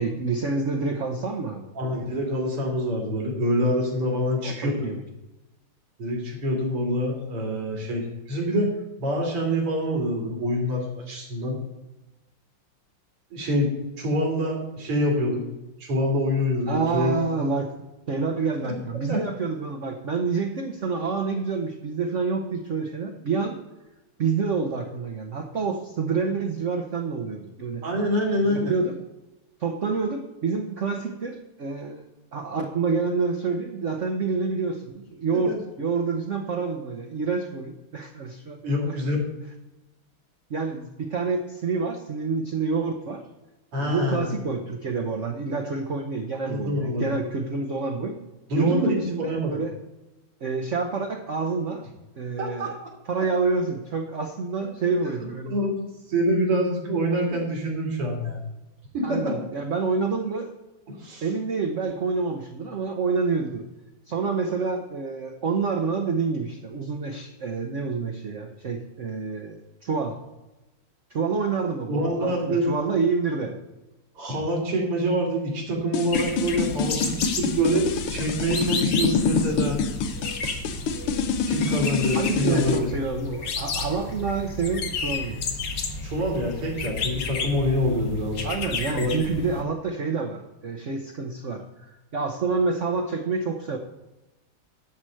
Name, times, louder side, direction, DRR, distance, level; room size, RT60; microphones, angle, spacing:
voice 1, 0.0-1.7 4.4-5.0 16.7-17.7 18.1-23.6 24.2-27.8 28.4-28.9 29.6-32.0 32.3-35.5 35.8-39.0 40.5-43.2 43.8-48.2 48.5-49.7 50.4-51.9 52.2-52.8 53.1-55.6 59.0-60.5 61.2-63.6 64.1-70.2 71.1-73.6 82.1-85.4 88.4-93.8, right 4 dB, 55° right, 3 dB, 0.9 m, -28 dB
voice 2, 1.8-4.9 6.0-8.7 9.0-11.6 13.3-13.7 14.0-15.4 15.8-17.2 19.1-19.2 27.8-28.7 35.5-35.6 38.6-39.2 43.7-44.3 46.5-47.0 48.5-49.6 52.4-52.9 55.5-58.4 58.9-59.3 61.0-61.2 71.9-72.7 74.2-79.8 81.5-82.9 86.0-88.5 88.9-89.2, equal, 85° right, -1 dB, 3.9 m, -26 dB
sound 1, 75.9-82.8, left 5 dB, 80° left, 1.8 m, -26 dB
sound 2, 76.1-89.6, left 4 dB, 55° left, 1.8 m, -32 dB
12.0 x 4.9 x 7.6 m, 1.0 s
omnidirectional pair, 2.4 m